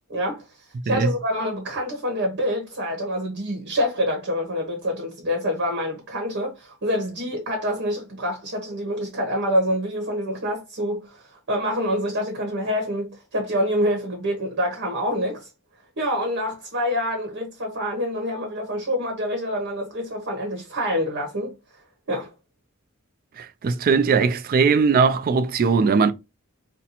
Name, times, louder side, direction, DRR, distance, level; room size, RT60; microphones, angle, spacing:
voice 1, 0.1-0.5 0.8-15.5 16.0-21.6 22.1-22.3, equal, 60° right, 1.0 m, -26 dB
voice 2, 23.4-26.1, right 5 dB, 40° right, 0.3 m, -19 dB
2.8 x 2.2 x 4.0 m
head